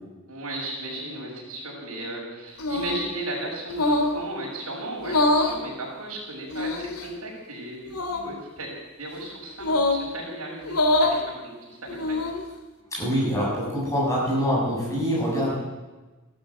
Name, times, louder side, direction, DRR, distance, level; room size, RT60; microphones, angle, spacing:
voice 1, 0.3-7.8 8.1-8.7 9.0-12.2, right 1 dB, 85° right, -3 dB, 6.2 m, -35 dB
sound 1, 2.6-3.1 3.7-4.2 5.0-5.6 6.5-7.1 7.9-8.2 9.6-10.0 10.6-11.2 11.9-12.4, left 2 dB, 85° left, 2.2 m, -24 dB
voice 2, 12.9-15.5, equal, 15° left, -5 dB, 7.6 m, -24 dB
14.5 x 12.0 x 7.9 m, 1.2 s
head